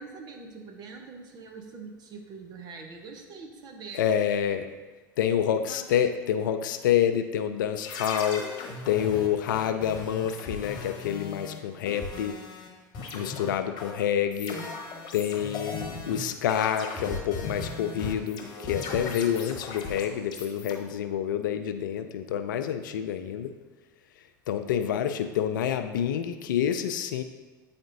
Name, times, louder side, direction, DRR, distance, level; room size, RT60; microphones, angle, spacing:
voice 1, 0.0-4.0 5.7-5.8, right 4 dB, 40° right, 3 dB, 1.0 m, -43 dB
voice 2, 3.9-4.7 5.2-8.4 8.9-12.4 13.1-14.6 15.1-23.5 24.5-27.2, left 9 dB, 75° left, 9 dB, 0.4 m, -28 dB
sound 1, 7.8-12.7 12.9-20.7, left 4 dB, 45° left, 1.2 m, -37 dB
8.7 x 4.3 x 2.7 m, 1.3 s
hypercardioid pair, 80°, 11 cm